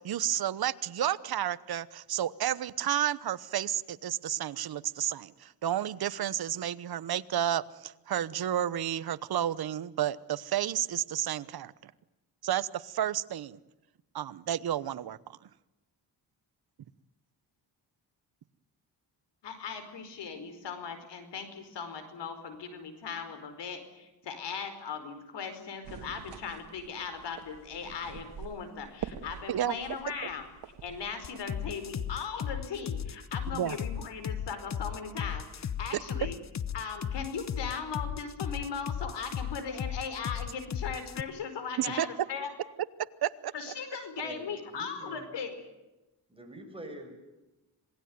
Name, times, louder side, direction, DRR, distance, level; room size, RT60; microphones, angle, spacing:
voice 1, 0.0-11.9 12.4-13.6 14.1-15.4 29.5-29.8 33.5-33.8 41.8-42.1 43.2-43.5, right 11 dB, 60° right, 15 dB, 1.1 m, -31 dB
voice 2, 19.4-30.5 30.8-36.4 36.7-42.5 43.5-45.6, left 6 dB, 80° left, 9 dB, 4.9 m, -38 dB
sound 1, 25.8-31.5, right 8 dB, 85° right, 2.1 m, -45 dB
sound 2, 31.2-41.2, left 8 dB, 40° left, 0.9 m, -35 dB
voice 3, 44.2-45.3 46.3-47.1, right 1 dB, 15° right, 3 dB, 7.0 m, -46 dB
27.0 x 19.0 x 9.6 m, 1.0 s
cardioid pair, 110°, 41 cm